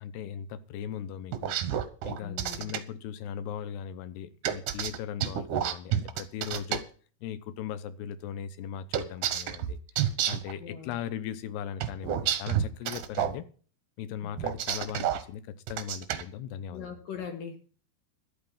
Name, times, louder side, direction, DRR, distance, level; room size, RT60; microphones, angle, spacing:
voice 1, 0.0-1.6 2.0-6.9 7.2-9.8 10.2-13.5 14.0-16.9, left 9 dB, 90° left, 3.1 m, -38 dB
sound 1, 1.3-2.8 4.4-6.8 8.9-10.5 11.8-13.4 14.4-15.2 15.7-16.2, right 10 dB, 65° right, 2.2 m, -29 dB
voice 2, 2.2-2.7 10.6-11.0 14.2-14.5 16.7-17.6, left 7 dB, 65° left, 3.1 m, -41 dB
12.0 x 8.4 x 7.3 m
omnidirectional pair, 4.6 m